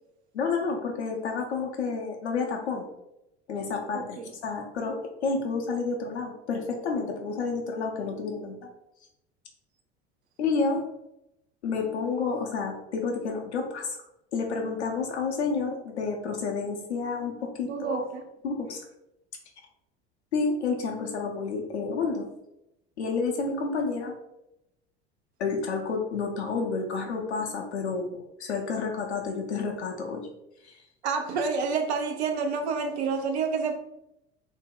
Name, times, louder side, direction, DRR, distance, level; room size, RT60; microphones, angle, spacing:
voice 1, 0.3-2.9 3.5-5.0 5.2-8.7 10.4-10.8 11.6-14.0 14.3-18.0 18.4-18.8 20.3-22.2 23.0-24.1 25.4-30.3 30.6-30.7, left 4 dB, 85° left, 0 dB, 0.6 m, -30 dB
voice 2, 3.9-4.3 17.6-18.3 31.0-33.8, right 5 dB, 80° right, 5 dB, 0.6 m, -29 dB
3.4 x 2.1 x 3.6 m, 0.85 s
hypercardioid pair, 70°, 33 cm